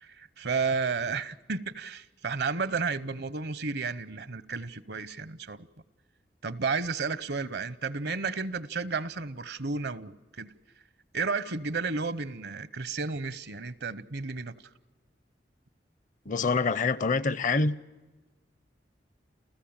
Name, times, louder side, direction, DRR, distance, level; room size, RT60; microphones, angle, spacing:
voice 1, 0.0-5.7 6.4-10.5 11.1-14.5, right 4 dB, 70° right, 0.9 m, -32 dB
voice 2, 16.3-17.8, left 4 dB, 45° left, 0.6 m, -26 dB
29.0 x 15.0 x 8.8 m
head